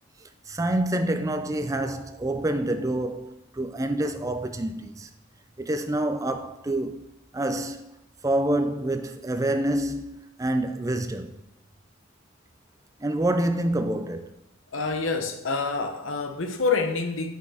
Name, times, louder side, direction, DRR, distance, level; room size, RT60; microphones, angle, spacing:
voice 1, 0.2-5.1 5.6-7.9 8.2-11.4 13.0-14.4, right 1 dB, 15° right, 0.4 m, -27 dB
voice 2, 14.7-17.3, left 4 dB, 85° left, 0.9 m, -27 dB
6.2 x 5.5 x 4.9 m
head